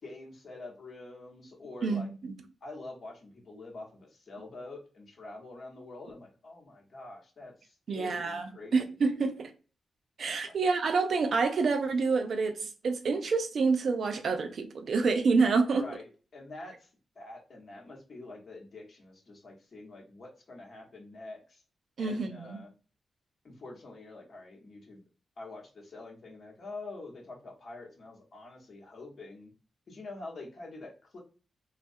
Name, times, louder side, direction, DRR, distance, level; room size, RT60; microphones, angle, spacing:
voice 1, 0.0-2.1 2.6-8.8 10.5-10.6 15.7-16.9 17.1-21.6 22.0-22.7 23.4-25.0 25.4-29.5 29.9-31.2, left 2 dB, 60° left, 0.9 m, -46 dB
voice 2, 1.8-2.3 7.9-9.5 10.2-15.9 22.0-22.6, right 4 dB, 65° right, 0.4 m, -28 dB
2.3 x 2.1 x 2.6 m
supercardioid pair, 45°, 0 cm